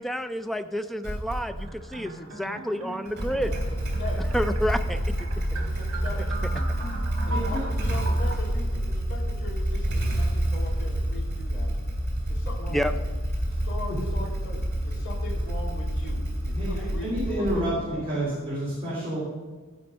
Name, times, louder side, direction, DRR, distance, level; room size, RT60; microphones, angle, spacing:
voice 1, 0.0-3.5 4.2-5.0 12.7-12.9, equal, ahead, 9 dB, 0.4 m, -29 dB
Motorcycle / Engine starting, 1.0-1.7 3.1-18.0, equal, 50° right, 2.9 m, -28 dB
sound 1, 1.6-8.4, right 2 dB, 70° right, 1.9 m, -39 dB
voice 2, 5.5-6.3 7.2-11.7 12.3-13.0 13.6-18.1, left 2 dB, 60° left, -5 dB, 2.8 m, -40 dB
voice 3, 7.3-7.6 13.5-13.6 16.5-19.2, right 1 dB, 25° right, -9 dB, 3.3 m, -29 dB
15.0 x 5.2 x 5.4 m, 1.4 s
head